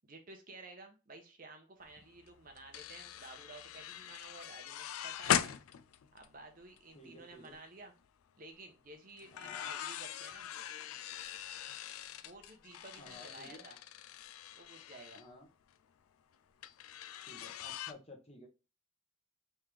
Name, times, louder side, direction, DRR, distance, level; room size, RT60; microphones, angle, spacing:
voice 1, 0.0-5.6 6.1-7.9 8.4-10.5 12.2-13.8 14.5-15.2, right 2 dB, 40° right, 5 dB, 0.8 m, -53 dB
sound 1, 1.9-2.0 2.2-6.9 7.3-7.5 9.2-15.2 16.6-17.9, left 10 dB, 85° left, 0.4 m, -40 dB
voice 2, 6.9-7.6 9.3-9.7 13.0-13.6 15.1-15.5 17.2-18.5, left 1 dB, 30° left, 1 dB, 1.0 m, -54 dB
3.6 x 3.3 x 3.1 m, 0.30 s
head